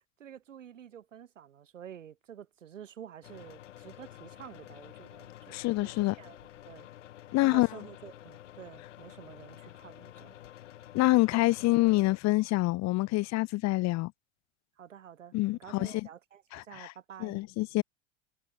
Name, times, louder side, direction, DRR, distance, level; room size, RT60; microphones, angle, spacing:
voice 1, 0.0-6.4 6.7-6.9 7.4-10.4 14.8-17.4, right 9 dB, 85° right, 4.0 m, -49 dB
sound 1, 3.2-12.2, left 12 dB, 75° left, 3.5 m, -50 dB
voice 2, 5.5-6.1 7.3-7.7 10.9-14.1 15.3-16.1 16.5-16.9 17.2-17.8, left 20 dB, 45° left, 1.4 m, -26 dB
hypercardioid pair, 85°, 37 cm